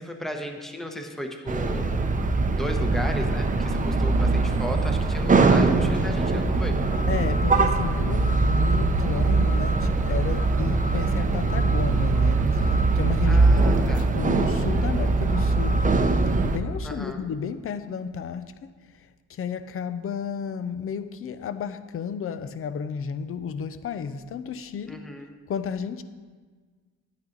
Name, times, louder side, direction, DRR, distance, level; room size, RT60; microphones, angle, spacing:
voice 1, 0.0-1.8 2.6-6.8 13.3-14.1 16.8-17.2 24.9-25.3, equal, ahead, 4 dB, 1.0 m, -35 dB
sound 1, 1.5-16.6, right 3 dB, 25° right, 0.7 m, -22 dB
voice 2, 7.1-13.5 13.9-15.9 16.5-18.4 19.3-25.0 25.5-26.0, left 7 dB, 45° left, 12 dB, 0.6 m, -32 dB
10.5 x 8.7 x 3.9 m, 1.5 s
cardioid pair, 90°, 30 cm